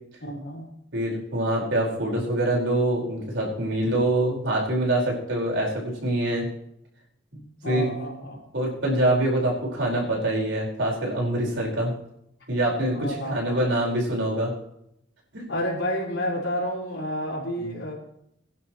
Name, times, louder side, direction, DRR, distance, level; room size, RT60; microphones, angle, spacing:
voice 1, 0.2-0.7 7.6-8.4 12.9-13.6 15.5-17.9, equal, 80° left, -3 dB, 5.0 m, -30 dB
voice 2, 0.9-6.5 7.3-7.4 7.6-7.9 8.5-11.9 12.5-14.5 15.3-15.4 17.6-17.7, right 1 dB, 70° right, -3 dB, 5.0 m, -25 dB
22.0 x 10.5 x 3.2 m, 0.77 s
head